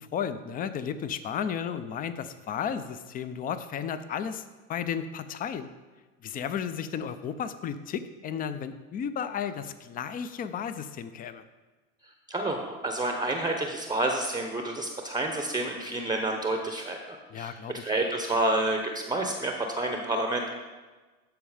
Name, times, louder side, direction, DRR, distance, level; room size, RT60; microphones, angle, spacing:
voice 1, 0.0-4.4 4.7-5.7 6.2-11.4 17.3-17.9, left 7 dB, 20° left, 12 dB, 0.5 m, -33 dB
voice 2, 12.3-17.0 17.4-17.5 17.8-20.5, right 2 dB, 10° right, 3 dB, 0.8 m, -29 dB
13.0 x 4.6 x 5.0 m, 1.3 s
hypercardioid pair, 85°, 42 cm